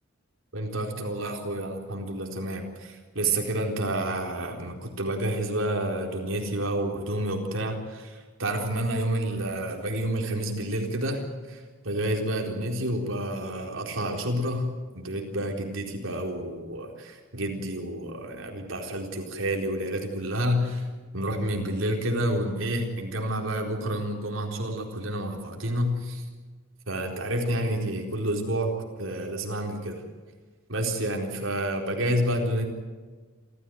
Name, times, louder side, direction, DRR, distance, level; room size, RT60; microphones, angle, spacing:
voice 1, 0.5-20.9 21.1-26.2 26.9-30.0 30.7-32.7, right 1 dB, 65° right, 2 dB, 4.2 m, -29 dB
28.0 x 14.0 x 9.4 m, 1.4 s
head